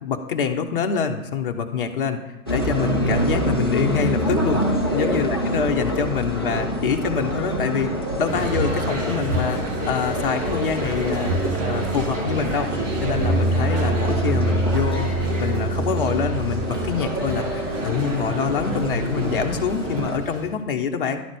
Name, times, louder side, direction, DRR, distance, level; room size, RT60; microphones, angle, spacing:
voice 1, 0.0-11.3 11.6-15.1 15.4-21.2, left 6 dB, 40° left, 4 dB, 0.8 m, -26 dB
sound 1, 2.5-20.2, equal, 20° left, 0.4 m, -26 dB
sound 2, 8.2-20.5, right 2 dB, 55° right, 1.7 m, -27 dB
11.0 x 4.0 x 6.2 m, 0.95 s
figure-of-eight pair, 130°, 44 cm